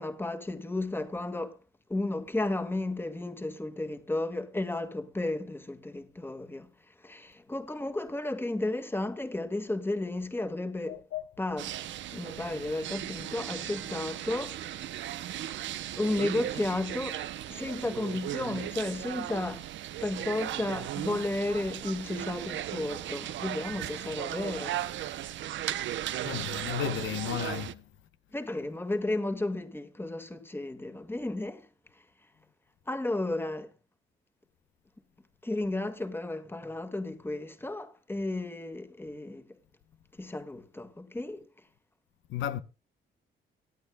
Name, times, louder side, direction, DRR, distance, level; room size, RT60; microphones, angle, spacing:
voice 1, 0.0-1.6 1.9-6.7 7.0-11.0 11.4-11.8 12.1-14.9 16.0-19.7 20.0-24.8 28.3-31.7 32.9-33.7 35.4-39.5 40.2-41.5, left 2 dB, 10° left, 1.7 m, -33 dB
voice 2, 10.9-11.3 26.2-27.8 42.3-42.6, left 11 dB, 75° left, 0.9 m, -34 dB
sound 1, 11.6-27.7, right 12 dB, 70° right, 0.7 m, -37 dB
26.0 x 8.9 x 2.3 m
cardioid pair, 90°, 20 cm